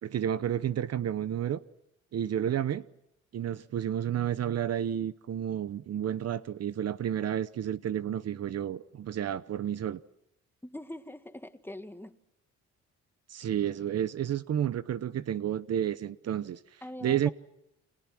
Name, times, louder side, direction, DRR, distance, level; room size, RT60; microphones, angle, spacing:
voice 1, 0.0-1.6 2.1-2.8 3.3-10.0 13.3-17.3, right 10 dB, 55° right, 0.9 m, -31 dB
voice 2, 10.6-12.2 16.8-17.3, left 1 dB, 5° left, 1.9 m, -43 dB
29.5 x 24.0 x 6.1 m
cardioid pair, 90°, 30 cm